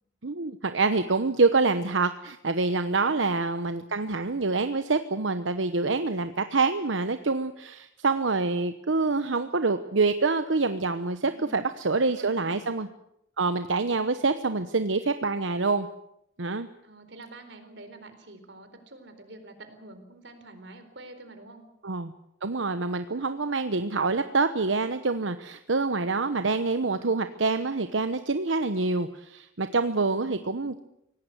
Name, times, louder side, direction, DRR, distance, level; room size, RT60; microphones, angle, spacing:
voice 1, 0.2-12.9 13.4-15.9 16.4-16.7 21.8-22.1 22.4-30.8, right 3 dB, 90° right, 10 dB, 1.0 m, -26 dB
voice 2, 11.3-11.7 11.9-12.6 16.8-21.6 30.2-30.5, right 2 dB, 65° right, 8 dB, 4.2 m, -47 dB
24.5 x 18.0 x 8.1 m, 0.78 s
head